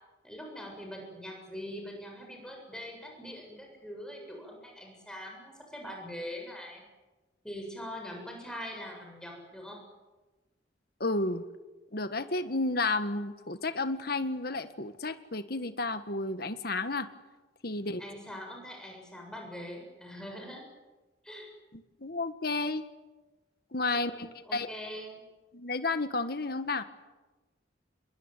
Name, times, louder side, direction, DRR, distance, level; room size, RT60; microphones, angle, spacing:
voice 1, 0.2-6.8 7.4-9.8 18.0-20.6 21.2-21.5 23.9-25.2, equal, 5° left, 1 dB, 7.3 m, -43 dB
voice 2, 11.0-11.4 11.9-17.1 17.6-18.0 21.7-22.8 23.7-24.7 25.5-26.8, left 2 dB, 55° left, 10 dB, 1.7 m, -32 dB
27.5 x 22.0 x 9.3 m, 1.2 s
head